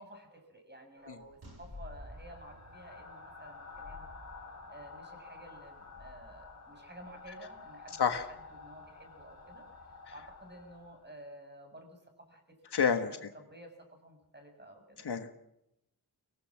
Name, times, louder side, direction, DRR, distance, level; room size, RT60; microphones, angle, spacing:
voice 1, 0.0-4.1 4.7-9.6 10.1-12.4 12.9-15.1, right 1 dB, 25° right, 4 dB, 7.0 m, -52 dB
sound 1, 1.1-11.1, left 3 dB, 40° left, 6.3 m, -50 dB
sound 2, 1.4-4.9 5.1-5.2, right 2 dB, 80° right, 6.7 m, -59 dB
voice 2, 12.7-13.1 15.0-15.3, left 6 dB, 85° left, 7 dB, 1.5 m, -28 dB
24.0 x 17.5 x 7.3 m, 0.85 s
wide cardioid pair, 85°, 39 cm